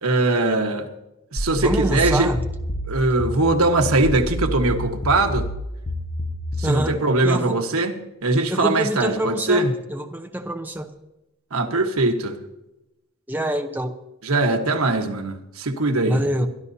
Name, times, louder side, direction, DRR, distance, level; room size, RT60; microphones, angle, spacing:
voice 1, 0.0-0.9 1.3-2.3 2.9-5.5 6.6-8.0 8.2-9.7 11.5-12.4 14.2-16.2, right 2 dB, 90° right, 1.4 m, -21 dB
sound 1, 1.4-6.8, equal, 30° left, 1.0 m, -28 dB
voice 2, 1.6-2.4 6.6-7.0 7.2-7.6 8.5-10.9 13.3-14.0 16.1-16.5, right 1 dB, 10° right, 0.8 m, -25 dB
23.5 x 12.0 x 2.8 m
head